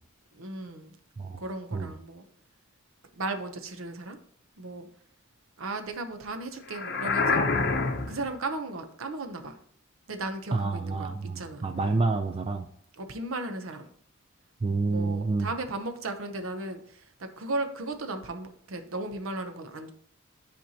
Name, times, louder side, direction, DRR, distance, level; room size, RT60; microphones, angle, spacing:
voice 1, 0.3-1.0 1.4-2.2 3.2-4.2 4.6-4.9 5.6-7.6 8.1-9.6 10.1-11.7 12.9-13.9 14.9-19.9, right 2 dB, 75° right, 7 dB, 0.8 m, -36 dB
sound 1, 6.7-8.3, left 4 dB, 50° left, 0.7 m, -26 dB
voice 2, 10.5-12.7 14.6-15.5, right 3 dB, 25° right, 6 dB, 0.3 m, -28 dB
10.0 x 4.3 x 2.8 m, 0.65 s
head